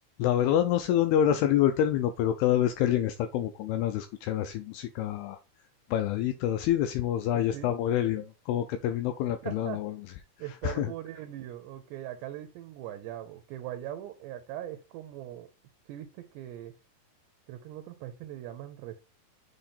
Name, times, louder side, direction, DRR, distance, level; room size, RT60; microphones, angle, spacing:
voice 1, 0.2-5.4 5.9-9.9 10.6-10.9, left 11 dB, 85° left, 8 dB, 2.3 m, -27 dB
voice 2, 7.3-7.8 9.4-9.8 10.4-15.5 15.9-16.7 17.5-19.0, right 12 dB, 80° right, 9 dB, 2.8 m, -40 dB
7.9 x 3.7 x 4.2 m, 0.29 s
omnidirectional pair, 5.1 m